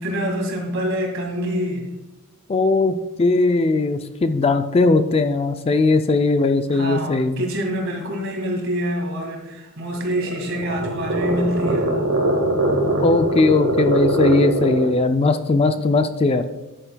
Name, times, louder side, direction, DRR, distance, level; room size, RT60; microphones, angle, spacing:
voice 1, 0.0-1.9 6.7-11.9, equal, 60° right, 1 dB, 2.0 m, -26 dB
voice 2, 2.5-7.4 13.0-16.5, left 3 dB, 25° left, 8 dB, 0.3 m, -19 dB
sound 1, 10.0-15.0, right 1 dB, 80° right, 1.7 m, -22 dB
9.9 x 9.1 x 2.3 m, 1.0 s
head